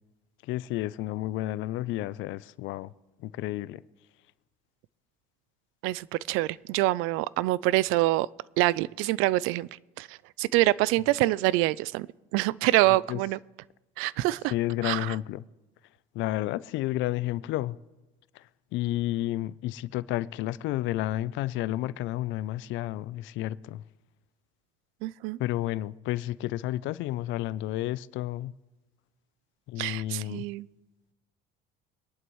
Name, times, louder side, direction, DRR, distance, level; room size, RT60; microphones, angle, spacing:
voice 1, 0.5-2.9 3.2-3.8 13.1-13.2 14.5-15.4 16.1-17.8 18.7-23.8 25.4-28.5 29.7-30.4, left 15 dB, 65° left, 0.5 m, -31 dB
voice 2, 5.8-8.3 8.6-9.7 10.0-12.1 12.3-13.4 14.0-14.5 14.8-15.2 25.0-25.4 29.8-30.7, right 18 dB, 75° right, 0.4 m, -26 dB
24.0 x 11.0 x 3.1 m
supercardioid pair, 100°, 21 cm